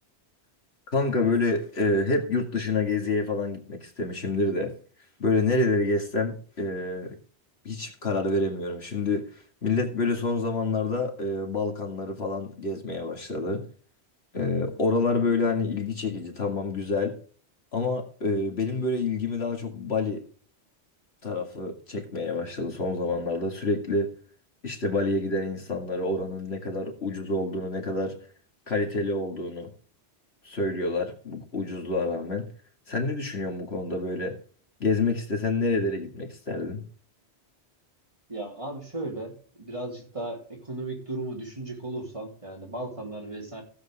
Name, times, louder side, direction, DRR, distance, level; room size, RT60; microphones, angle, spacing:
voice 1, 0.9-4.7 5.2-7.2 7.6-9.2 9.6-13.6 14.3-17.2 17.7-20.2 21.2-24.1 24.6-28.2 28.7-29.7 30.4-32.5 32.9-34.4 34.8-36.8, left 3 dB, 70° left, 3 dB, 2.4 m, -27 dB
voice 2, 38.3-43.6, right 2 dB, 30° right, -2 dB, 3.7 m, -36 dB
15.5 x 8.0 x 3.5 m, 0.43 s
omnidirectional pair, 1.1 m